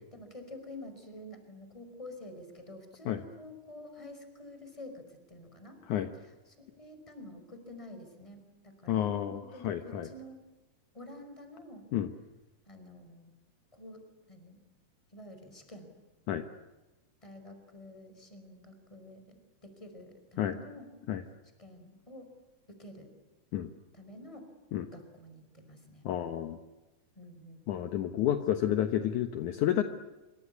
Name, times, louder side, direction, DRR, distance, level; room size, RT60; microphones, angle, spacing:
voice 1, 0.1-5.8 6.2-10.4 10.9-11.9 12.7-13.3 13.7-14.0 14.3-14.6 15.1-15.9 17.2-20.9 21.6-22.3 22.7-23.1 23.9-24.5 24.9-26.0 27.1-27.7, left 1 dB, 10° left, 6 dB, 5.1 m, -49 dB
voice 2, 8.9-10.1 11.9-12.1 16.3-16.4 20.4-20.6 21.1-21.2 23.5-23.7 24.7-24.9 26.0-26.6 27.7-29.8, left 11 dB, 70° left, 8 dB, 2.4 m, -30 dB
26.5 x 25.5 x 8.4 m, 1.1 s
omnidirectional pair, 3.9 m